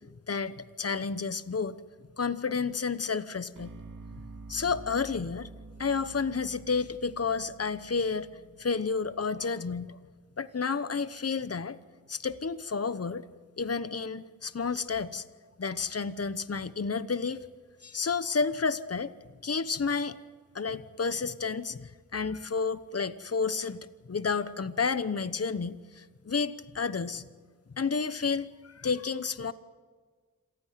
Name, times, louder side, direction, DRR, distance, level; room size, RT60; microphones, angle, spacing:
voice 1, 0.3-1.8 2.2-3.7 4.5-5.5 5.8-8.3 8.6-10.0 10.4-11.8 12.1-13.2 13.6-15.2 15.6-17.4 17.8-19.1 19.4-20.2 20.5-27.2 27.7-29.5, left 5 dB, 45° left, 13 dB, 1.0 m, -31 dB
sound 1, 3.5-9.6, right 3 dB, 65° right, 2.1 m, -48 dB
27.0 x 15.5 x 9.4 m, 1.5 s
wide cardioid pair, 75°, 34 cm